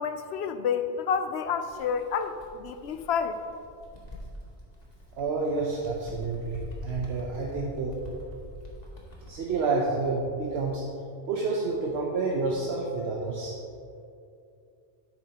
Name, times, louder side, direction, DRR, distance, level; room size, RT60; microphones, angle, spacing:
voice 1, 0.0-3.4, left 6 dB, 75° left, 9 dB, 0.8 m, -29 dB
Bird, 1.7-5.3 5.6-9.5, equal, 40° left, 1.6 m, -44 dB
voice 2, 5.2-7.9 9.3-10.8 11.3-13.5, right 3 dB, 70° right, -2 dB, 1.1 m, -29 dB
10.5 x 8.6 x 2.9 m, 2.5 s
omnidirectional pair, 1.1 m